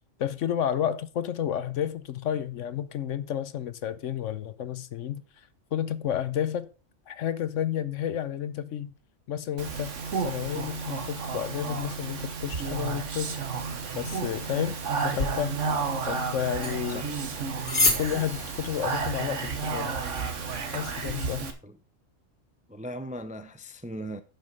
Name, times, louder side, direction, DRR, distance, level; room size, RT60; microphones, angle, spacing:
voice 1, 0.2-5.2 5.7-6.7 7.1-8.9 9.3-13.3 13.9-15.6 16.1-17.0 18.0-20.0 20.7-21.5, left 9 dB, 75° left, 1.1 m, -31 dB
Speech, 9.6-21.5, right 5 dB, 70° right, 1.6 m, -32 dB
sound 1, 15.1-21.2, left 2 dB, 50° left, 2.3 m, -33 dB
voice 2, 22.7-24.2, equal, 10° right, 0.4 m, -39 dB
10.5 x 5.6 x 5.3 m
omnidirectional pair, 1.3 m